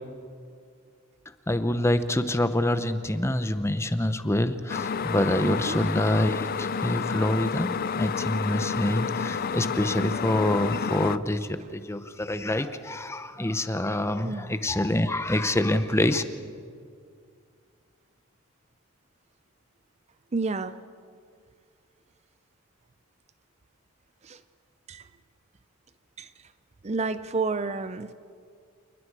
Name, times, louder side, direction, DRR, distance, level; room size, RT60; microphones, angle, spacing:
voice 1, 1.5-7.7 8.0-16.2, left 1 dB, 10° left, 11 dB, 0.8 m, -26 dB
sound 1, 4.7-11.2, left 6 dB, 45° left, 0.4 m, -30 dB
voice 2, 5.4-5.8 14.2-14.5 20.3-20.8 24.2-24.4 24.9-25.0 26.2-26.3 26.8-28.1, right 4 dB, 30° right, 13 dB, 0.5 m, -30 dB
29.0 x 19.5 x 4.8 m, 2.3 s
head